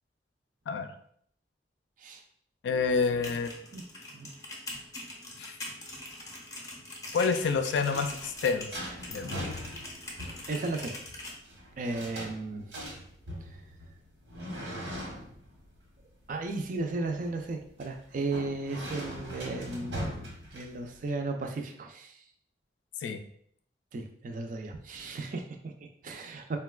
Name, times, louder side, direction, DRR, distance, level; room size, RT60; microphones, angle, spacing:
voice 1, 2.6-3.5 5.4-5.6 7.1-8.8 9.1-9.5 23.0-23.2, left 5 dB, 85° left, 8 dB, 0.3 m, -28 dB
sound 1, 3.0-11.4, left 2 dB, 20° left, 0.6 m, -43 dB
sound 2, 7.4-21.1, equal, 90° right, 1.0 m, -41 dB
voice 2, 10.5-10.9 11.8-12.7 16.3-22.2 23.9-26.6, right 3 dB, 50° right, 4 dB, 0.4 m, -35 dB
3.9 x 2.2 x 2.2 m, 0.64 s
head